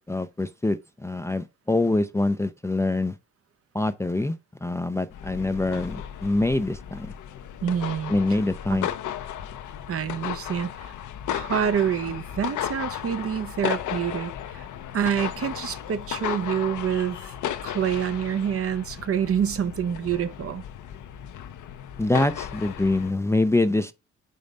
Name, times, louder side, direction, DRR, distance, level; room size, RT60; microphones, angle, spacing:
voice 1, 0.0-3.1 3.7-4.4 4.6-7.1 8.1-8.9 22.0-23.9, left 2 dB, 10° left, 0.5 m, -25 dB
sound 1, 5.1-23.1, left 10 dB, 75° left, 0.8 m, -35 dB
voice 2, 7.6-8.1 9.9-10.9 11.3-14.7 14.9-17.3 17.6-20.6, right 8 dB, 50° right, 0.8 m, -27 dB
5.3 x 3.8 x 5.2 m
cardioid pair, 90°, 30 cm